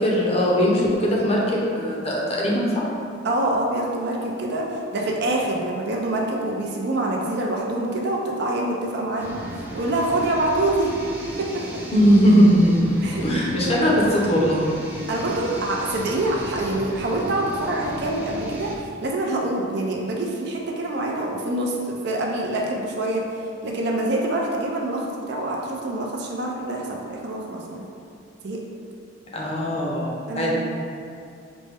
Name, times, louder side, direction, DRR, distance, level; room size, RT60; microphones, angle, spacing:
voice 1, 0.0-2.9 11.9-12.9 13.2-14.7 29.3-30.6, equal, 30° left, -4 dB, 0.6 m, -19 dB
voice 2, 3.2-10.9 11.4-11.8 13.0-14.2 15.1-23.3 23.6-27.8 28.4-28.6 30.3-30.6, right 1 dB, 60° right, -1 dB, 0.5 m, -26 dB
sound 1, 9.2-18.8, right 1 dB, 10° right, 0.5 m, -36 dB
5.1 x 2.1 x 3.4 m, 2.5 s
head